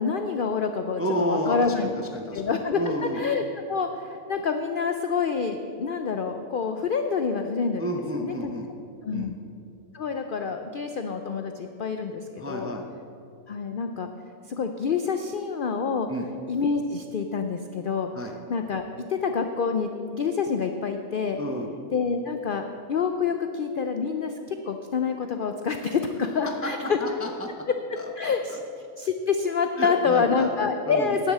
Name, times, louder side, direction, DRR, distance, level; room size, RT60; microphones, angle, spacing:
voice 1, 0.0-1.9 2.3-2.8 3.1-3.4 3.7-7.9 8.2-8.3 9.0-9.4 9.9-12.7 13.5-14.1 14.5-16.1 16.5-18.1 18.5-21.4 21.9-27.0 27.7-27.8 28.2-28.6 29.0-31.3, left 5 dB, 70° left, 6 dB, 0.5 m, -27 dB
voice 2, 1.0-3.2 7.8-8.7 9.1-9.3 12.4-12.9 16.1-16.3 18.1-18.3 21.4-21.7 26.6-26.7 27.0-27.5 28.0-28.3 29.8-30.5 30.9-31.2, equal, 20° right, 2 dB, 0.4 m, -31 dB
10.0 x 7.4 x 7.4 m, 2.5 s
omnidirectional pair, 1.6 m